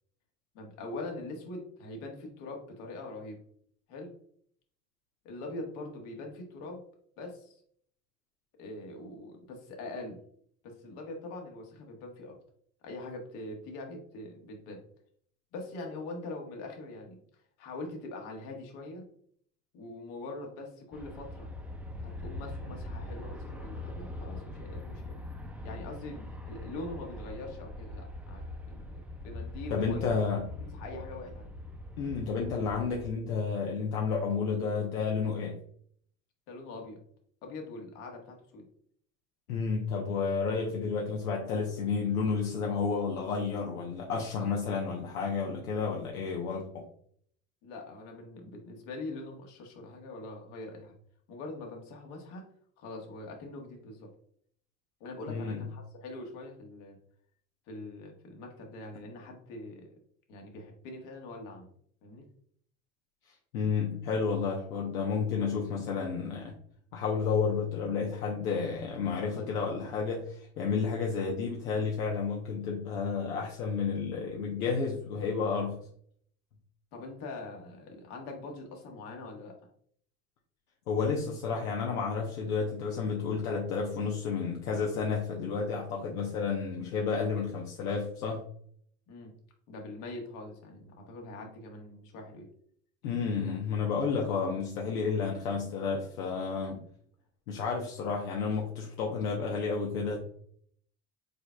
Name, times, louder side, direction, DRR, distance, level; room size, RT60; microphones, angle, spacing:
voice 1, 0.5-3.4 3.9-4.2 5.2-6.8 7.2-7.6 8.6-10.2 10.6-12.4 12.8-14.8 15.5-19.0 19.7-21.5 22.0-25.1 25.6-30.2 30.6-31.5 36.5-37.0 37.4-38.6 47.6-50.9 51.3-52.4 52.8-54.1 55.0-57.0 57.7-59.9 60.3-61.7 62.0-62.3 76.9-79.6 89.1-89.3 89.7-92.5, left 2 dB, 70° left, 2 dB, 1.5 m, -43 dB
Aircraft, 20.9-33.1, left 1 dB, 5° right, 0.7 m, -42 dB
voice 2, 29.7-30.5 32.0-35.6 39.5-46.8 55.3-55.6 63.5-66.5 66.9-75.8 80.9-88.4 93.0-96.8 97.5-100.2, left 5 dB, 85° left, -1 dB, 0.9 m, -31 dB
5.3 x 4.3 x 2.2 m, 0.62 s
hypercardioid pair, 75°, 42 cm